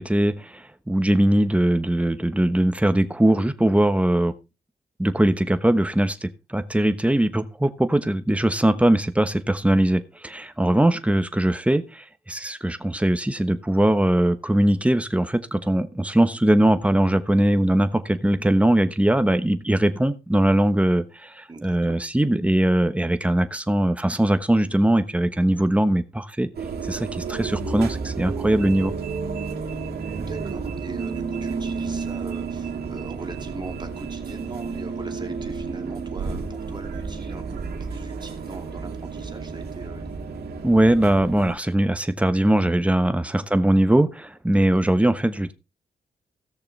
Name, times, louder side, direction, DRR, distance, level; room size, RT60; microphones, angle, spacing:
voice 1, 0.0-4.3 5.0-26.5 26.8-28.9 40.6-45.5, right 1 dB, 10° right, 1.1 m, -21 dB
voice 2, 21.5-22.0 30.2-40.2 43.2-43.4 44.5-44.7, right 2 dB, 25° right, 2.5 m, -40 dB
sound 1, 26.5-41.5, right 5 dB, 75° right, 2.2 m, -31 dB
17.0 x 6.7 x 3.3 m
cardioid pair, 85°, 16 cm